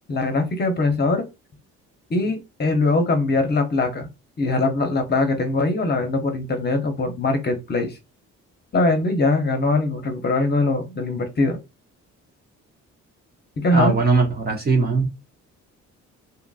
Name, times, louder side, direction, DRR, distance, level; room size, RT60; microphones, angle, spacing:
voice 1, 0.1-1.3 2.1-4.1 4.4-8.0 8.7-11.6 13.6-14.0, left 2 dB, 35° left, 0.8 m, -22 dB
voice 2, 13.7-15.1, right 3 dB, 30° right, 0.8 m, -20 dB
2.8 x 2.5 x 2.4 m
cardioid pair, 90°, 30 cm